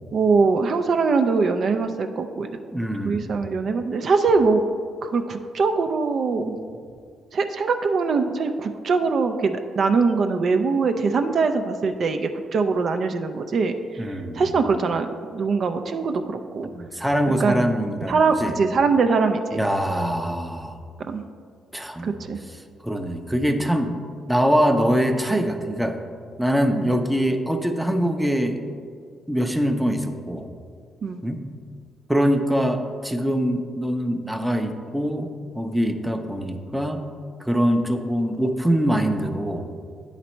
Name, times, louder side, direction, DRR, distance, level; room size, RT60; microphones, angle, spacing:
voice 1, 0.1-2.5 3.0-4.6 5.0-6.5 7.3-13.7 14.3-16.7 17.4-17.6 18.1-19.6 21.1-21.2 22.0-22.4 26.8-26.9 31.0-31.2, right 4 dB, 55° right, 7 dB, 0.4 m, -22 dB
voice 2, 2.7-3.3 14.0-14.6 16.7-18.6 19.5-20.8 21.7-22.2 22.8-23.9 24.3-26.0 26.4-28.6 29.3-30.5 31.2-31.4 32.1-35.3 35.5-37.1 37.4-39.7, equal, 5° right, 5 dB, 0.6 m, -23 dB
9.5 x 4.0 x 4.4 m, 2.1 s
cardioid pair, 90°, 0 cm